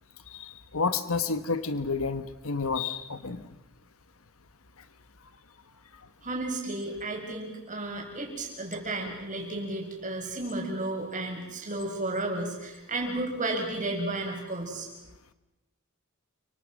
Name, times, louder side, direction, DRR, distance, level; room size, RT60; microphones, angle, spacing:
voice 1, 0.3-3.5, left 4 dB, 70° left, 12 dB, 1.3 m, -30 dB
voice 2, 6.2-14.9, right 2 dB, 35° right, 1 dB, 7.1 m, -33 dB
30.0 x 25.0 x 6.5 m, 0.99 s
head